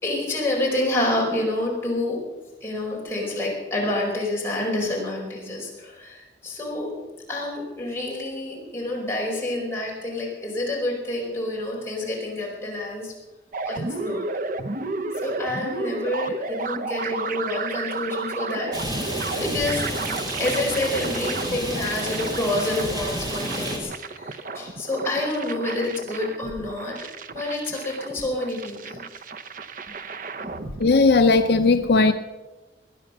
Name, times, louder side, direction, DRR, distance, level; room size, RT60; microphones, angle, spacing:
voice 1, 0.0-2.2 2.6-6.9 7.3-13.1 13.7-14.3 15.2-18.8 19.4-27.0 27.3-29.0, left 1 dB, 15° left, 4.9 m, -28 dB
sound 1, 13.5-30.8, right 3 dB, 50° right, 0.7 m, -33 dB
Rain, 18.7-23.8, right 1 dB, 25° right, 3.6 m, -30 dB
voice 2, 30.8-32.1, left 3 dB, 65° left, 0.6 m, -17 dB
19.5 x 11.0 x 6.6 m
head